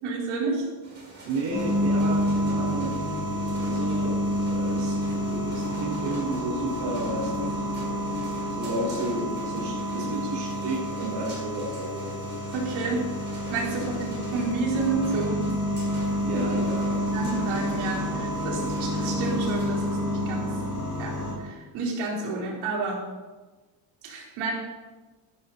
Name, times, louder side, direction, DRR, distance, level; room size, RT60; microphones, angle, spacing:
voice 1, 0.0-0.7 12.5-13.1 13.5-15.4 16.3-16.4 17.1-20.5 21.0-23.0 24.0-24.5, right 3 dB, 75° right, -3 dB, 4.5 m, -30 dB
sound 1, 0.8-19.9, right 1 dB, 20° right, 5.1 m, -45 dB
voice 2, 1.2-3.0 3.6-7.6 8.6-12.1 13.7-14.0 16.2-17.0, right 2 dB, 60° right, -6 dB, 5.3 m, -32 dB
sound 2, 1.5-21.3, equal, 40° left, 4.9 m, -29 dB
15.5 x 11.5 x 4.3 m, 1.3 s
cardioid pair, 170°, 49 cm